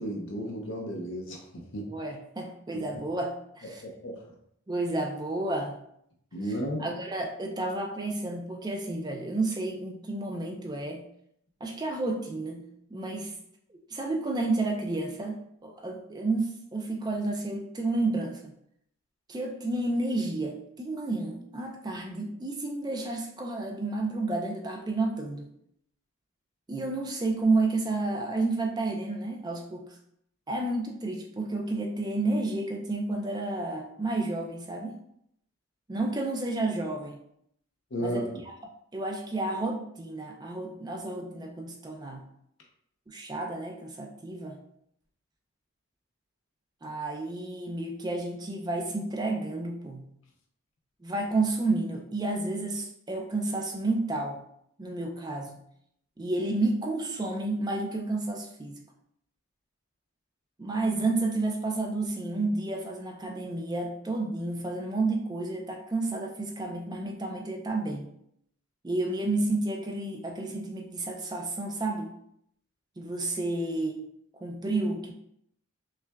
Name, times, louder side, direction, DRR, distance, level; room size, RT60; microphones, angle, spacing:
voice 1, 0.0-1.8 2.7-2.8 3.8-4.3 6.3-6.8 37.9-38.3, equal, 60° left, 0 dB, 0.7 m, -33 dB
voice 2, 1.9-3.8 4.7-5.8 6.8-11.0 11.6-12.6 12.9-13.3 13.7-15.4 15.6-18.4 19.3-25.5 26.7-30.0 30.5-34.9 35.9-37.2 38.0-38.5 38.9-42.2 43.1-44.6 46.8-50.0 51.0-54.4 54.8-55.6 56.2-58.8 60.6-68.1 68.8-72.1 73.0-74.1 74.4-75.1, right 2 dB, 20° right, 2 dB, 0.4 m, -31 dB
5.5 x 2.3 x 2.2 m, 0.72 s
head